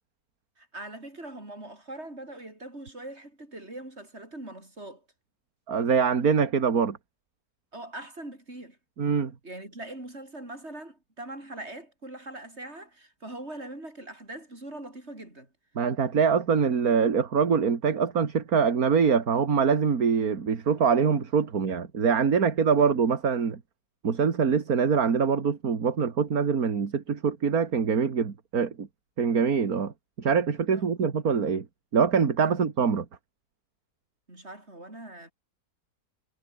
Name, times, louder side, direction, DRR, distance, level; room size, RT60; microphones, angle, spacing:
voice 1, 0.6-5.0 7.7-8.8 9.4-15.5 22.8-22.9 30.7-30.9 32.4-32.6 34.3-35.3, right 1 dB, 40° right, 7.2 m, -42 dB
voice 2, 5.7-7.0 9.0-9.3 15.8-23.6 24.0-28.9 29.2-29.9 30.2-31.7 31.9-33.0, right 6 dB, 60° right, 2.4 m, -24 dB
omnidirectional pair, 1.8 m